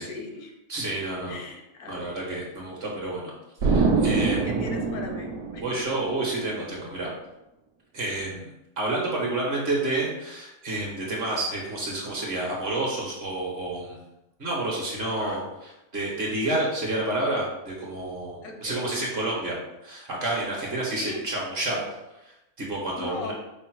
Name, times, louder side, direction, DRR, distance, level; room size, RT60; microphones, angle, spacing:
voice 1, 0.0-0.6 1.3-2.2 4.4-5.7 15.0-15.5 18.4-18.9 20.9-21.2 23.0-23.3, left 3 dB, 80° left, 3 dB, 1.1 m, -38 dB
voice 2, 0.7-1.4 1.9-3.3 3.6-4.6 5.6-7.1 7.9-8.5 8.8-14.0 14.4-15.4 15.9-19.5 19.8-21.8 22.6-23.3, right 2 dB, 45° right, -3 dB, 1.2 m, -29 dB
Explosion, 3.6-6.3, right 4 dB, 70° right, 1.0 m, -24 dB
5.2 x 2.0 x 4.5 m, 0.91 s
omnidirectional pair, 1.6 m